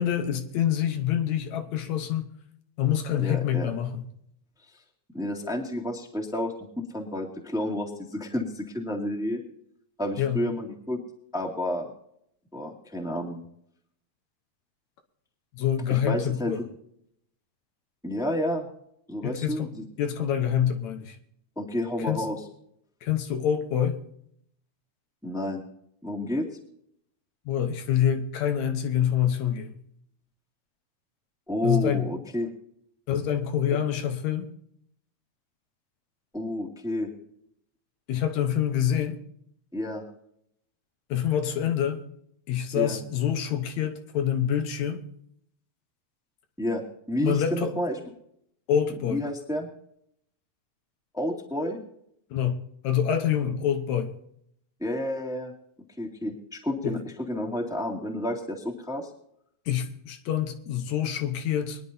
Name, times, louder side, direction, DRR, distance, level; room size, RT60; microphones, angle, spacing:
voice 1, 0.0-2.3 2.8-4.0 10.2-10.4 15.5-16.6 19.2-21.2 22.0-22.3 23.0-24.0 27.5-29.7 31.6-32.1 33.1-34.5 38.1-39.2 41.1-42.0 42.5-45.0 47.2-47.7 48.7-49.2 52.3-52.6 52.8-54.1 56.8-57.0 59.7-61.8, left 9 dB, 75° left, 6 dB, 2.3 m, -26 dB
voice 2, 3.2-3.7 5.1-9.4 10.0-11.0 11.3-11.9 12.5-13.4 15.9-16.5 18.0-18.6 19.1-19.8 21.5-22.4 25.2-25.6 26.0-26.5 31.5-32.5 36.3-37.1 39.7-40.0 42.7-43.0 46.6-46.8 47.1-48.0 48.9-49.7 51.1-51.8 54.8-55.5 56.0-59.1, left 1 dB, ahead, 0 dB, 1.6 m, -30 dB
23.0 x 10.5 x 2.7 m, 0.72 s
omnidirectional pair, 3.4 m